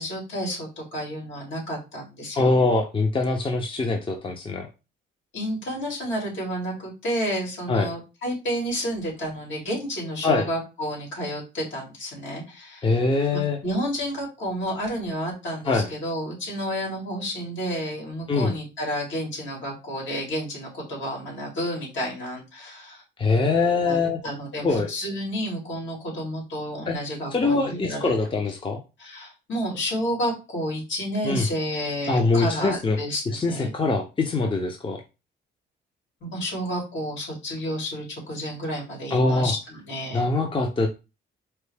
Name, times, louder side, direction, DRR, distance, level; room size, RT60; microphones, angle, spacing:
voice 1, 0.0-2.6 5.3-13.0 13.3-23.0 23.9-24.0 24.2-28.1 29.0-33.7 36.2-40.2, equal, 70° left, -2 dB, 2.2 m, -30 dB
voice 2, 2.4-4.7 7.7-7.9 10.2-10.5 12.8-13.6 15.6-15.9 18.3-18.5 23.2-24.2 24.6-24.9 26.9-27.0 27.3-28.8 31.2-31.5 32.1-33.0 33.3-35.0 39.1-39.5 40.1-40.9, left 3 dB, 25° left, 3 dB, 0.7 m, -23 dB
4.4 x 2.1 x 3.4 m, 0.29 s
cardioid pair, 90°, 20 cm